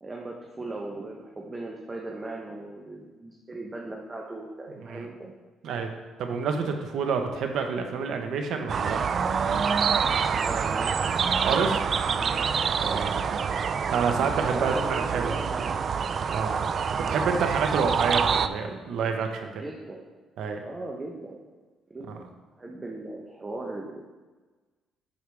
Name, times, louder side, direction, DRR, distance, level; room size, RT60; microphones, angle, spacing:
voice 1, 0.0-5.3 10.4-11.0 12.1-12.3 12.6-13.1 14.5-15.9 19.5-20.1 20.6-21.4 21.9-22.2 22.6-24.1, right 2 dB, 20° right, -1 dB, 0.9 m, -38 dB
voice 2, 6.2-9.0 11.4-11.8 12.9-13.2 13.9-15.4 16.3-16.7 17.0-19.6 20.4-20.6 22.1-22.2, right 5 dB, 75° right, 4 dB, 1.1 m, -28 dB
sound 1, 8.7-18.5, right 6 dB, 45° right, 0.3 m, -26 dB
12.0 x 4.8 x 3.5 m, 1.3 s
cardioid pair, 105°, 0 cm